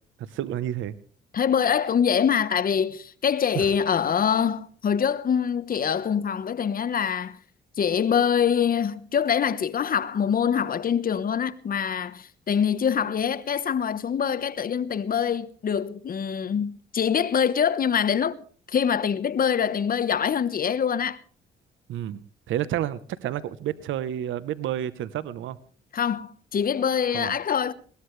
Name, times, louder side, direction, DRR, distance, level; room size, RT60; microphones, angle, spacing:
voice 1, 0.2-0.9 3.5-3.7 21.9-25.6 27.1-27.3, right 11 dB, 80° right, 1.0 m, -30 dB
voice 2, 1.3-7.4 7.8-18.4 18.7-21.2 25.9-27.7, left 7 dB, 45° left, 1.2 m, -24 dB
21.0 x 18.0 x 3.3 m
cardioid pair, 90°, 20 cm